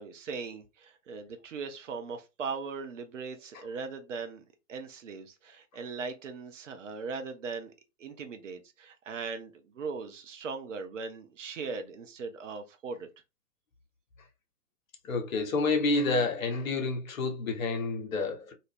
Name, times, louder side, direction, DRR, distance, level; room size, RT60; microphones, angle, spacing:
voice 1, 0.0-7.7 8.0-13.1, right 4 dB, 50° right, 0.7 m, -39 dB
voice 2, 15.0-18.5, left 3 dB, 55° left, 1.0 m, -29 dB
2.6 x 2.5 x 3.4 m
figure-of-eight pair, 115°, 48 cm